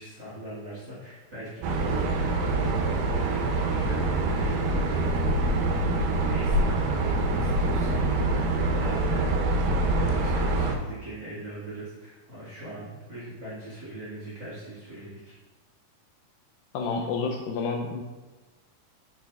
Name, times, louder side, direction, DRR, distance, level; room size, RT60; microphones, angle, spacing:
voice 1, 0.0-5.1 5.8-15.2, right 1 dB, 55° right, -7 dB, 1.3 m, -41 dB
sound 1, 1.6-10.8, right 2 dB, 90° right, 2.9 m, -25 dB
voice 2, 16.7-18.0, left 4 dB, 85° left, 2 dB, 2.0 m, -29 dB
7.4 x 6.8 x 2.3 m, 1.2 s
omnidirectional pair, 4.6 m